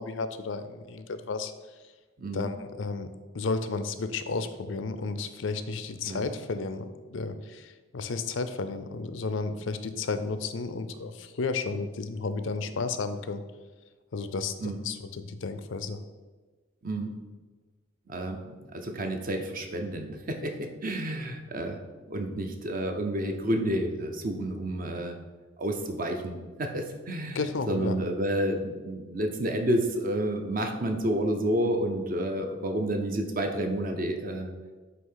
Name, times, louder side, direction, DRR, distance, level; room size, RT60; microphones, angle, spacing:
voice 1, 0.0-1.5 2.3-13.4 14.1-16.0 27.3-28.0, left 4 dB, 70° left, 10 dB, 0.5 m, -33 dB
voice 2, 2.2-2.5 6.1-6.2 14.6-14.8 16.8-17.1 18.1-21.8 22.1-25.2 25.6-27.4 27.7-34.5, right 1 dB, 45° right, 4 dB, 0.7 m, -30 dB
8.0 x 2.8 x 5.6 m, 1.3 s
head